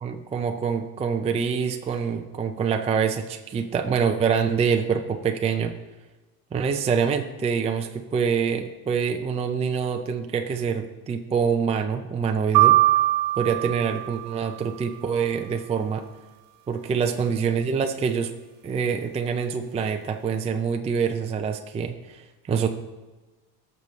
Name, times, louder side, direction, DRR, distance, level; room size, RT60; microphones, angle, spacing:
voice 1, 0.0-5.7 6.5-12.8 13.4-16.0 16.7-18.3 18.6-22.7, right 6 dB, 15° right, 5 dB, 0.4 m, -25 dB
sound 1, 12.5-14.7, right 16 dB, 60° right, 1.3 m, -21 dB
17.5 x 6.7 x 3.1 m, 1.2 s
cardioid pair, 150°, 39 cm